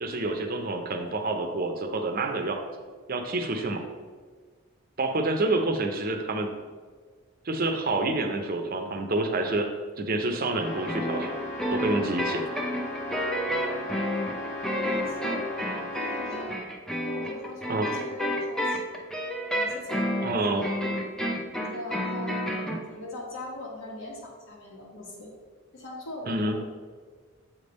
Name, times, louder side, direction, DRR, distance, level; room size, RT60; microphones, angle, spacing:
voice 1, 0.0-2.6 3.1-3.8 5.0-6.5 7.4-9.7 10.0-11.3 11.7-12.4 17.7-17.9 20.2-20.7 26.3-26.6, right 2 dB, 45° right, 4 dB, 0.6 m, -28 dB
sound 1, 10.6-16.6, left 1 dB, 45° left, 1.2 m, -36 dB
sound 2, 10.8-22.8, equal, ahead, 0.6 m, -30 dB
voice 2, 14.6-15.4 16.0-16.6 17.0-18.8 19.5-20.7 21.1-21.2 21.7-25.3 25.7-26.6, left 1 dB, 70° left, -3 dB, 1.8 m, -41 dB
7.5 x 3.4 x 5.3 m, 1.5 s
head